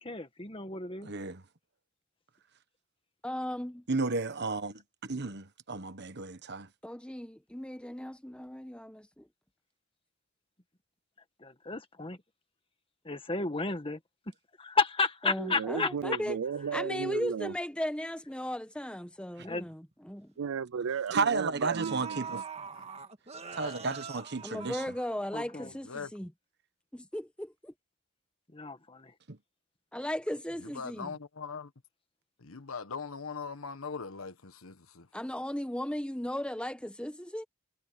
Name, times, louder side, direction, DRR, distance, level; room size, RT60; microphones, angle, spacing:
voice 1, 0.0-1.1 11.4-12.2 13.1-14.0 14.6-15.9 19.4-19.7 25.3-25.7 28.5-29.1, left 3 dB, 25° left, 1.8 m, -32 dB
voice 2, 1.1-1.4 3.9-6.7 21.1-22.4 23.5-24.8 29.3-29.4, right 4 dB, 55° right, 1.3 m, -33 dB
voice 3, 3.2-3.9 6.8-9.3 15.2-16.4 16.7-20.3 24.4-26.3 26.9-27.7 29.9-31.1 35.1-37.4, left 1 dB, 5° left, 1.5 m, -36 dB
voice 4, 15.4-17.5 20.4-22.4, right 6 dB, 75° right, 0.4 m, -34 dB
sound 1, 19.9-20.1 21.1-21.2 21.6-25.5 25.9-26.0, right 5 dB, 30° right, 1.9 m, -43 dB
voice 5, 23.6-23.9 25.6-26.1 30.6-31.7 32.4-35.1, left 5 dB, 85° left, 1.4 m, -41 dB
head